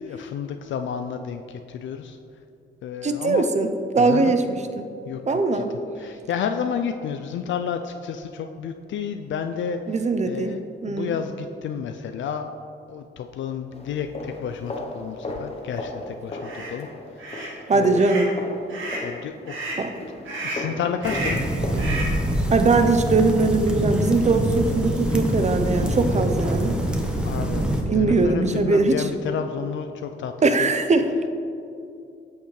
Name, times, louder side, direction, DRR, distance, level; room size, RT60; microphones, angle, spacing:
voice 1, 0.0-2.2 2.8-3.5 4.0-4.3 5.1-5.7 6.0-10.0 10.3-10.6 10.9-12.5 12.9-17.3 17.7-18.1 19.0-19.6 20.4-21.5 27.2-30.3 30.6-30.7, left 7 dB, 70° left, 6 dB, 0.4 m, -31 dB
voice 2, 3.0-3.7 3.9-4.9 5.3-5.7 9.9-11.1 17.7-18.3 19.8-19.9 22.5-26.8 27.9-29.0 30.4-31.3, right 3 dB, 35° right, 8 dB, 0.6 m, -21 dB
sound 1, 13.7-22.0, left 2 dB, 30° left, 0.9 m, -36 dB
sound 2, 16.4-16.7 17.2-17.5 17.9-18.3 18.7-19.1 19.5-19.8 20.3-20.7 21.0-21.5 21.8-22.2, right 2 dB, 70° right, 1.7 m, -32 dB
sound 3, 21.0-27.8, right 1 dB, 5° right, 1.1 m, -25 dB
8.2 x 6.5 x 3.2 m, 2.6 s
cardioid pair, 65°, 21 cm